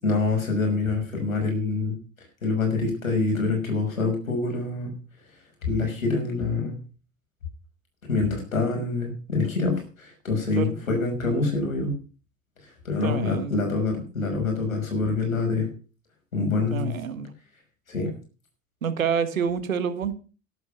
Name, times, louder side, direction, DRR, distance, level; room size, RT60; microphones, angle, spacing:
voice 1, 0.0-2.0 2.4-4.9 5.6-6.8 8.0-11.9 12.6-15.7 16.3-16.9 17.9-18.1, left 3 dB, 80° left, 6.0 m, -26 dB
voice 2, 13.0-13.6 16.7-17.3 18.8-20.1, right 7 dB, 80° right, 1.7 m, -27 dB
13.0 x 11.5 x 5.8 m
figure-of-eight pair, 70°, 40 cm